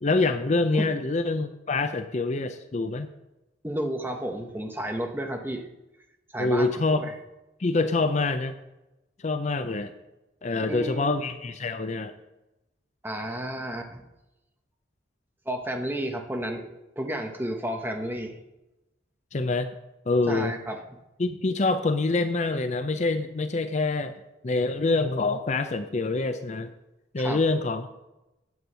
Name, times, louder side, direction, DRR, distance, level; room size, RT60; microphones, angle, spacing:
voice 1, 0.0-3.1 6.4-7.1 7.6-8.5 9.2-9.9 10.4-12.1 19.3-19.7 20.1-20.5 21.2-24.1 24.4-26.7 27.1-27.9, left 3 dB, 35° left, 9 dB, 0.5 m, -26 dB
voice 2, 3.6-5.7 6.3-7.1 10.6-11.2 13.0-14.0 15.5-18.4 20.3-21.0 27.2-27.4, right 1 dB, 10° right, 4 dB, 1.0 m, -32 dB
9.5 x 8.0 x 5.6 m, 0.96 s
head